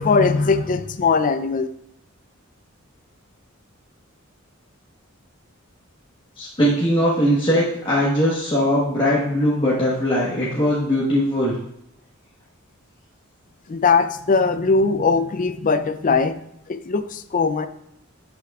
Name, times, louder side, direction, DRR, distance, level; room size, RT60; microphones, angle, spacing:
voice 1, 0.0-1.7 13.7-16.4 16.7-17.7, left 4 dB, 40° left, 11 dB, 0.4 m, -20 dB
voice 2, 6.4-11.5, equal, 25° left, -7 dB, 1.2 m, -20 dB
11.5 x 5.8 x 2.3 m, 0.77 s
head